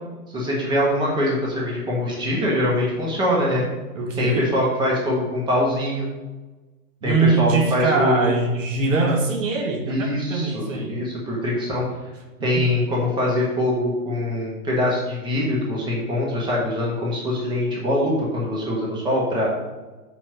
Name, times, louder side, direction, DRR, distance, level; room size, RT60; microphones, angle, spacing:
voice 1, 0.3-3.6 4.2-6.1 7.0-8.3 9.9-11.8 12.4-19.5, left 1 dB, 10° right, -3 dB, 1.5 m, -23 dB
voice 2, 3.9-4.6 7.0-11.0 12.4-12.7, right 3 dB, 55° right, 3 dB, 1.4 m, -22 dB
6.2 x 4.5 x 6.0 m, 1.2 s
hypercardioid pair, 130°, 47 cm